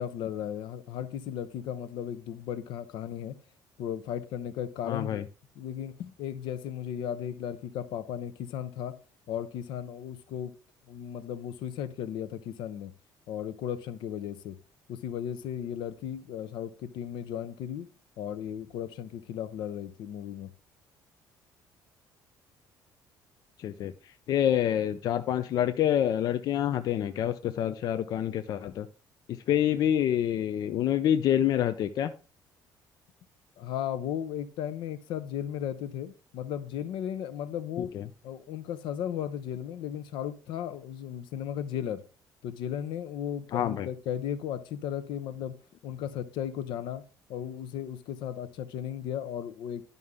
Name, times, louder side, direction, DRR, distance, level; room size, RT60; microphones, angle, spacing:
voice 1, 0.0-3.3 3.8-5.3 5.6-9.0 9.3-10.5 10.9-12.9 13.3-14.6 14.9-17.9 18.2-20.5 33.6-37.9 38.2-42.0 42.4-45.5 45.8-47.0 47.3-49.8, left 9 dB, 80° left, 0.8 m, -35 dB
voice 2, 4.8-5.2 23.6-23.9 24.3-28.9 29.3-32.1 37.8-38.1 43.5-43.9, left 10 dB, 55° left, 0.5 m, -27 dB
11.0 x 5.4 x 3.7 m
cardioid pair, 145°, 8 cm